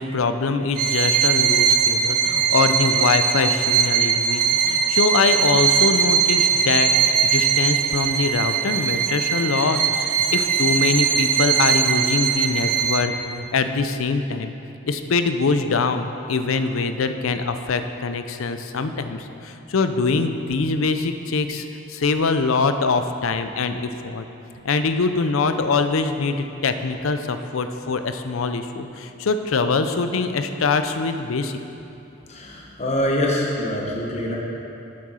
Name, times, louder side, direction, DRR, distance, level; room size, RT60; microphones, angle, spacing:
voice 1, 0.0-9.8 10.3-14.5 14.9-24.2 24.6-31.6, left 4 dB, 80° left, 9 dB, 0.5 m, -23 dB
Bowed string instrument, 0.8-13.3, right 7 dB, 40° right, 0.4 m, -20 dB
voice 2, 32.3-34.4, left 1 dB, 30° left, -2 dB, 1.0 m, -24 dB
7.7 x 7.5 x 5.6 m, 2.9 s
head